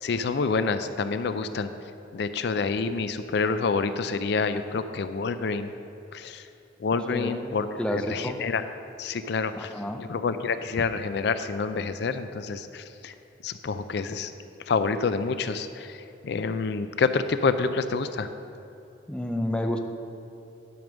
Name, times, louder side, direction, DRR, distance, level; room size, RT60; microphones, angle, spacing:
voice 1, 0.0-1.7 2.1-5.7 6.1-6.5 6.8-8.6 9.0-9.7 10.0-13.1 13.4-14.3 14.6-18.3, left 4 dB, 65° left, 11 dB, 0.4 m, -28 dB
voice 2, 7.1-8.4 9.5-10.0 19.1-19.8, left 1 dB, 5° left, 4 dB, 0.5 m, -30 dB
11.0 x 5.2 x 6.1 m, 2.9 s
head